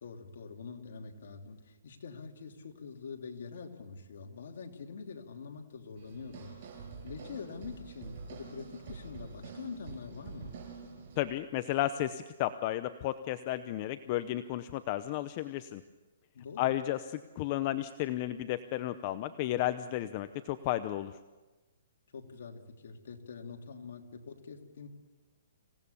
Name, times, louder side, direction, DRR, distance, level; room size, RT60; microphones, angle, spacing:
voice 1, 0.0-6.5 7.0-10.6 16.3-16.7 22.1-24.9, left 5 dB, 65° left, 2 dB, 3.1 m, -45 dB
sound 1, 6.0-11.2, right 5 dB, 45° right, 6.3 m, -47 dB
voice 2, 11.2-15.8 16.6-21.1, left 14 dB, 30° left, 11 dB, 0.7 m, -33 dB
26.5 x 17.5 x 7.1 m, 1.2 s
hypercardioid pair, 165°, 0 cm